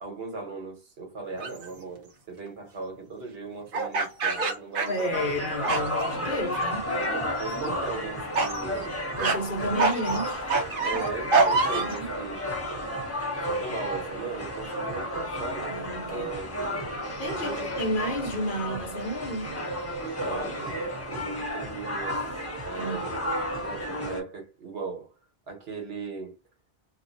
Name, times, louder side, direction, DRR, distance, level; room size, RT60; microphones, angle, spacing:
voice 1, 0.0-5.2 7.4-8.9 10.8-12.4 13.2-16.5 17.3-17.7 20.2-22.3 22.6-23.2 23.6-25.1 25.5-26.4, right 4 dB, 75° right, 1.3 m, -38 dB
sound 1, 1.4-1.7 3.7-5.4 5.6-6.1 6.5-7.0 7.4-7.7 8.3-8.6 9.2-9.4 9.8-12.0, right 3 dB, 60° right, 0.9 m, -26 dB
voice 2, 4.9-6.9 9.2-10.5 11.7-12.1 15.7-16.3 17.2-19.6 22.7-23.0, equal, 55° left, 1.0 m, -31 dB
sound 2, 5.1-24.2, equal, 15° left, 0.9 m, -32 dB
2.6 x 2.6 x 2.6 m
omnidirectional pair, 1.1 m